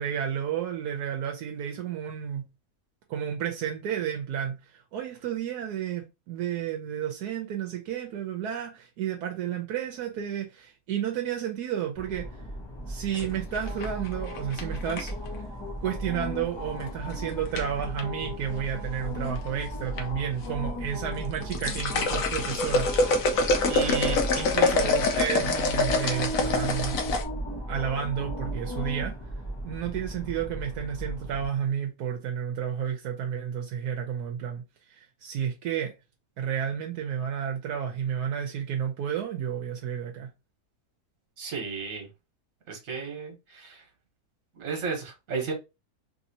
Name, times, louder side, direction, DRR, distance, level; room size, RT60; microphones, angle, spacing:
voice 1, 0.0-2.4 3.1-12.3 12.9-15.1 15.8-23.3 23.7-27.0 27.7-29.1 29.6-34.6 34.9-35.9 36.4-40.3, right 9 dB, 80° right, 1.2 m, -31 dB
sound 1, 12.0-31.5, equal, 30° left, 0.4 m, -36 dB
sound 2, 13.1-15.3 16.8-17.1 17.5-18.0 18.9-19.5 19.8-20.0 20.4-20.5 21.2-27.2, left 3 dB, 65° left, 1.1 m, -26 dB
voice 2, 41.4-42.1 42.7-43.8 44.5-45.5, right 5 dB, 60° right, 1.4 m, -34 dB
3.3 x 2.7 x 2.7 m
omnidirectional pair, 1.6 m